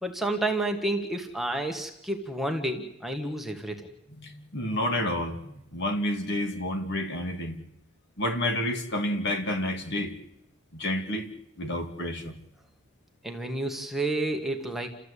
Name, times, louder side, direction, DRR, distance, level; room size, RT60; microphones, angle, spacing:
voice 1, 0.0-3.9 13.2-14.9, right 2 dB, ahead, 3 dB, 1.7 m, -30 dB
voice 2, 4.2-5.5 5.7-7.6 8.2-10.1 10.7-11.3 11.6-12.4, left 1 dB, 50° left, 6 dB, 2.4 m, -29 dB
29.5 x 14.0 x 8.4 m, 0.86 s
head